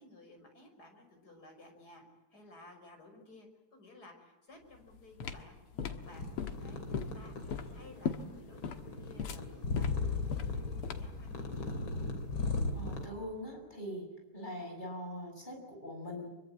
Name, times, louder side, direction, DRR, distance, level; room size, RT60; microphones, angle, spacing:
voice 1, 0.0-2.0 2.3-11.9, left 2 dB, 45° left, 3 dB, 6.2 m, -56 dB
sound 1, 4.7-11.2, left 6 dB, 90° left, 2.4 m, -39 dB
sound 2, 6.0-13.1, left 3 dB, 60° left, 3.8 m, -37 dB
voice 2, 12.7-14.1 14.3-16.3, equal, 20° left, 2 dB, 6.9 m, -42 dB
25.5 x 24.0 x 8.8 m, 1.1 s
omnidirectional pair, 2.4 m